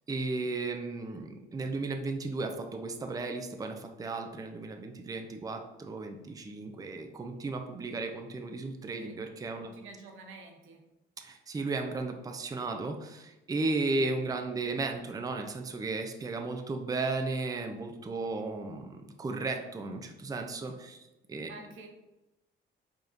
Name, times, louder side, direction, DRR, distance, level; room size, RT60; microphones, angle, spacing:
voice 1, 0.1-9.7 11.2-21.0 21.3-21.5, right 3 dB, 20° right, 4 dB, 0.4 m, -35 dB
voice 2, 9.6-10.8 21.5-21.9, right 3 dB, 85° right, 2 dB, 0.8 m, -49 dB
4.8 x 2.9 x 2.5 m, 0.97 s
cardioid pair, 90°, 20 cm